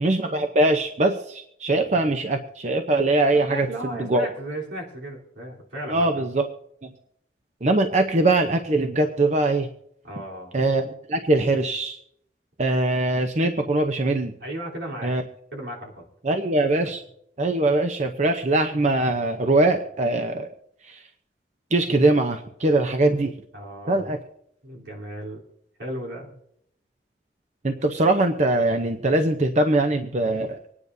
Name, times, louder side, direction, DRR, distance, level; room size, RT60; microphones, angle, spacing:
voice 1, 0.0-3.7 4.0-4.3 5.9-6.5 6.8-6.9 7.6-9.7 10.5-12.0 12.6-14.3 15.0-15.2 16.2-17.0 17.4-20.5 21.7-23.3 23.9-24.2 27.6-30.6, right 2 dB, 40° right, 5 dB, 0.7 m, -22 dB
voice 2, 3.3-6.2 10.0-10.6 14.4-15.1 15.5-16.0 23.5-24.1 24.6-25.4 25.8-26.4, right 1 dB, 85° right, -3 dB, 3.6 m, -35 dB
25.5 x 9.8 x 2.7 m, 0.72 s
head